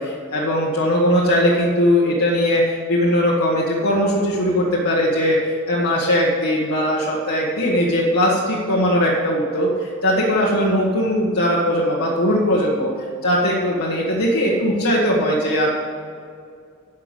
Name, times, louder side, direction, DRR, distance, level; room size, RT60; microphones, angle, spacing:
voice 1, 0.0-5.4 5.7-12.9 13.2-15.7, equal, 90° left, -5 dB, 1.6 m, -19 dB
10.5 x 6.0 x 8.1 m, 2.2 s
head